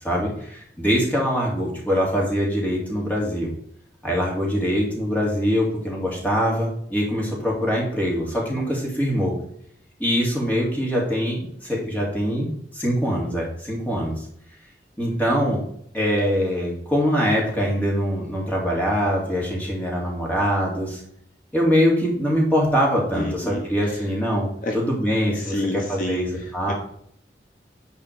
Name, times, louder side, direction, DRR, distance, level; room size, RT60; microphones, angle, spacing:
voice 1, 0.0-3.5 4.0-9.3 10.0-14.1 15.0-15.6 15.9-21.0 21.5-25.6 25.9-26.2 26.5-26.7, equal, 10° left, -3 dB, 3.0 m, -23 dB
voice 2, 23.1-24.0 24.6-24.7 25.3-26.3 26.7-26.8, left 2 dB, 50° left, 1 dB, 1.4 m, -29 dB
9.7 x 4.8 x 4.9 m, 0.69 s
head